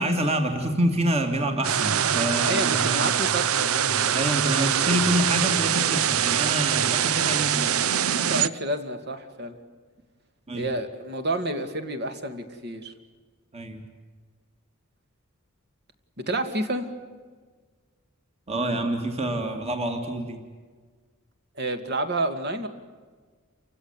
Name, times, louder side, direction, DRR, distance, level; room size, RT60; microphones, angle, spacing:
voice 1, 0.0-3.1 4.1-7.7 10.5-10.7 13.5-13.8 18.5-20.4, right 1 dB, 30° right, 5 dB, 2.7 m, -27 dB
sound 1, 1.6-8.5, right 9 dB, 70° right, 0.7 m, -23 dB
voice 2, 2.4-5.0 8.1-9.6 10.5-12.9 16.2-16.9 21.6-22.7, right 1 dB, 50° right, 8 dB, 2.3 m, -30 dB
29.0 x 16.5 x 9.8 m, 1.5 s
head